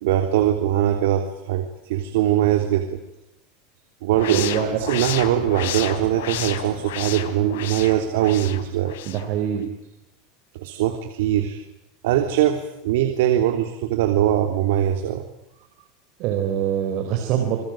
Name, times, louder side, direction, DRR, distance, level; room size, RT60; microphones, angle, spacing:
voice 1, 0.0-3.0 4.0-4.5 4.8-9.0 10.5-11.6 12.0-15.2, right 12 dB, 75° right, 6 dB, 3.2 m, -21 dB
sound 1, 4.1-9.3, left 11 dB, 85° left, 3.6 m, -32 dB
voice 2, 4.3-4.8 9.0-9.7 16.2-17.6, right 10 dB, 40° right, 5 dB, 4.4 m, -24 dB
28.0 x 21.5 x 9.0 m, 0.86 s
supercardioid pair, 165°, 0 cm